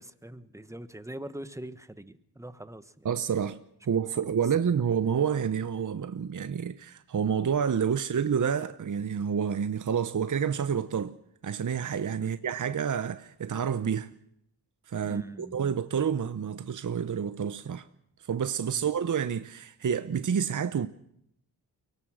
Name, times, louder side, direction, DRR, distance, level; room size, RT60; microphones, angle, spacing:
voice 1, 0.0-3.1 4.4-4.5 12.2-12.3 15.0-15.6 18.7-18.9, right 1 dB, 5° right, 1.3 m, -43 dB
voice 2, 3.0-3.6 3.8-11.1 11.4-14.1 14.9-17.9 18.3-20.9, right 7 dB, 50° right, 0.9 m, -29 dB
23.5 x 17.5 x 6.4 m
cardioid pair, 55°, 41 cm